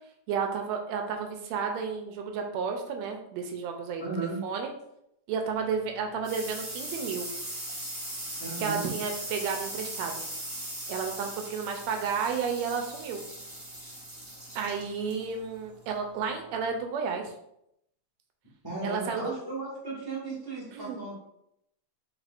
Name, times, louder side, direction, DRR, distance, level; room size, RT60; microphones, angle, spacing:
voice 1, 0.3-4.7 5.3-7.3 8.6-10.2 10.9-13.2 14.5-17.3 18.8-19.3 20.7-21.1, right 6 dB, 80° right, 4 dB, 1.7 m, -32 dB
voice 2, 4.0-4.4 8.4-8.9 18.6-21.1, right 3 dB, 15° right, -7 dB, 0.7 m, -35 dB
sound 1, 5.6-16.8, right 1 dB, 55° right, 0.4 m, -40 dB
4.9 x 3.9 x 2.4 m, 0.78 s
omnidirectional pair, 3.4 m